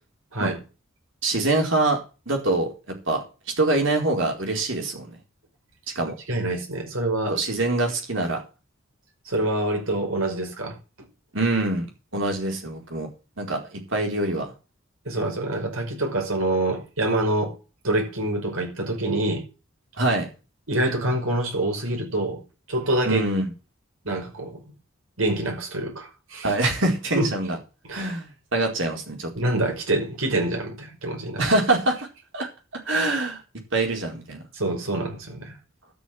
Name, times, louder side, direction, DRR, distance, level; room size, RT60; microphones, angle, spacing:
voice 1, 1.2-2.0 2.3-3.2 3.6-5.2 5.9-6.1 7.3-8.4 11.3-11.9 12.1-13.1 13.4-14.5 20.0-20.3 23.1-23.5 26.4-27.6 27.9-29.3 31.4-32.1 32.3-33.4 33.7-34.4, right 2 dB, 65° right, 4.5 m, -24 dB
voice 2, 6.3-7.4 9.3-10.8 15.1-17.6 17.8-19.4 20.7-22.4 22.7-23.2 24.0-24.6 25.2-26.6 27.2-27.3 27.9-28.1 29.3-31.4 34.5-35.5, right 1 dB, 80° right, 5.7 m, -26 dB
13.0 x 6.3 x 7.7 m
head